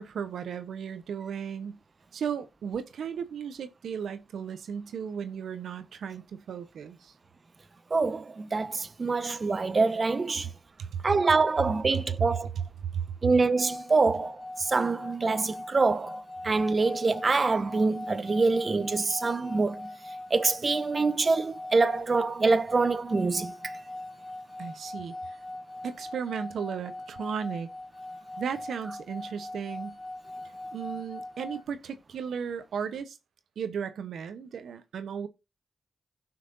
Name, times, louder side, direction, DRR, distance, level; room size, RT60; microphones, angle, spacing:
voice 1, 0.0-1.8 2.1-7.1 10.8-11.0 12.9-13.0 24.6-25.4 25.8-27.7 28.4-30.0 30.7-33.2 33.6-35.3, right 7 dB, 85° right, 1.0 m, -35 dB
voice 2, 7.9-10.5 11.0-12.5 13.2-19.9 20.3-23.8, right 3 dB, 45° right, 1.0 m, -25 dB
sound 1, 13.6-31.6, left 2 dB, 30° left, 2.5 m, -41 dB
16.5 x 5.8 x 2.7 m
cardioid pair, 45°, 0 cm